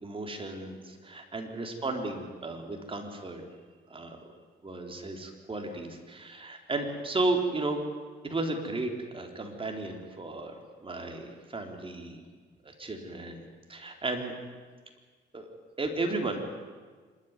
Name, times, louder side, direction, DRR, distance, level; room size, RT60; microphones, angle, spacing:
voice 1, 0.0-3.4 3.9-4.2 4.6-7.8 8.2-10.5 10.8-12.2 12.6-14.3 15.3-15.5 15.8-16.4, right 2 dB, 25° right, 3 dB, 3.7 m, -34 dB
26.0 x 12.5 x 9.7 m, 1.5 s
cardioid pair, 90°, 20 cm